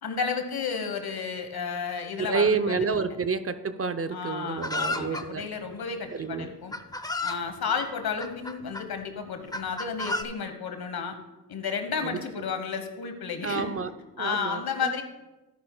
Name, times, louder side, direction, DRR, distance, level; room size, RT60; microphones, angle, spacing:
voice 1, 0.0-2.8 4.1-6.7 7.2-11.2 11.5-13.7 14.2-15.0, left 6 dB, 80° left, 7 dB, 1.2 m, -32 dB
voice 2, 2.2-5.5 6.1-6.6 12.0-12.2 13.4-13.9 14.2-14.9, right 5 dB, 40° right, 10 dB, 0.6 m, -29 dB
Chicken rooster, 4.6-5.3 6.2-6.3 6.7-7.4 8.2-8.8 9.5-10.2, left 2 dB, 10° left, 0.6 m, -31 dB
12.5 x 11.0 x 2.2 m, 1.0 s
cardioid pair, 65°, 37 cm